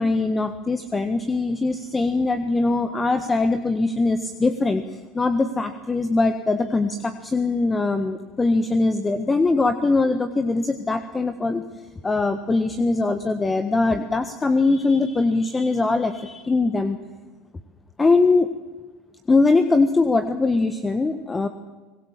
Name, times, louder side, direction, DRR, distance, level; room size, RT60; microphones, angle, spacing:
voice 1, 0.0-11.6 12.0-17.0 18.0-18.5 19.3-21.5, left 3 dB, 20° left, 9 dB, 1.4 m, -21 dB
24.0 x 20.5 x 7.6 m, 1.3 s
hypercardioid pair, 80°, 0 cm